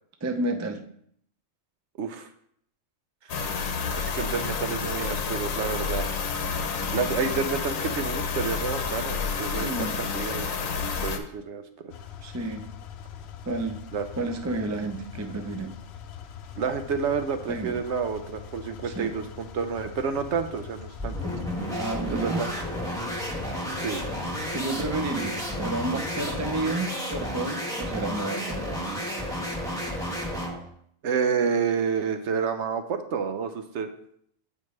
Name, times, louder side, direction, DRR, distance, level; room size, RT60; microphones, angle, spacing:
voice 1, 0.2-0.8 9.6-10.0 12.2-12.7 13.4-13.8 14.2-15.8 17.5-17.8 18.8-19.1 21.7-22.4 24.5-29.0, right 2 dB, 25° right, 5 dB, 0.3 m, -31 dB
voice 2, 2.0-2.3 4.0-6.2 6.6-6.7 6.9-10.5 11.0-11.9 13.9-14.0 16.6-21.2 22.1-22.5 23.8-24.0 31.0-33.9, right 6 dB, 65° right, 8 dB, 0.9 m, -29 dB
sound 1, 3.3-11.2, left 5 dB, 90° left, 1.2 m, -29 dB
sound 2, 11.9-27.0, left 8 dB, 65° left, 0.8 m, -43 dB
sound 3, 21.0-30.6, equal, 5° left, 1.1 m, -32 dB
8.3 x 5.3 x 3.2 m, 0.68 s
omnidirectional pair, 1.4 m